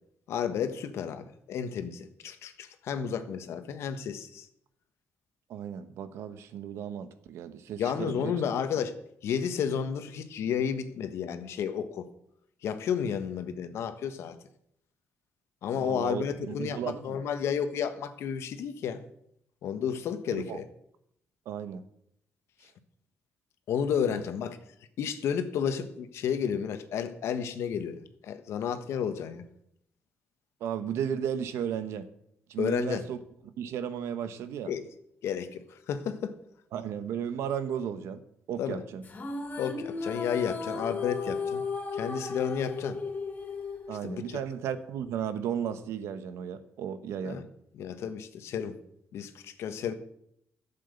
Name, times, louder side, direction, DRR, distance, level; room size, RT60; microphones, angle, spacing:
voice 1, 0.3-4.5 7.8-8.9 9.2-12.1 12.6-14.4 15.6-19.0 19.6-20.7 23.7-24.6 25.0-29.4 32.6-33.1 34.6-34.9 35.2-36.4 38.6-38.8 39.6-41.6 41.9-43.0 44.0-44.4 47.2-47.5 47.7-48.8 49.1-49.9, left 7 dB, 80° left, 9 dB, 1.3 m, -32 dB
voice 2, 5.5-8.3 15.7-17.2 20.3-20.6 21.4-21.8 24.1-24.2 30.6-32.1 32.5-33.2 33.6-34.7 36.7-38.2 38.5-39.0 43.9-47.4, right 8 dB, 85° right, 11 dB, 1.1 m, -34 dB
sound 1, 39.0-44.5, left 4 dB, 40° left, 3.2 m, -35 dB
12.0 x 7.4 x 8.2 m, 0.73 s
cardioid pair, 85°, 5 cm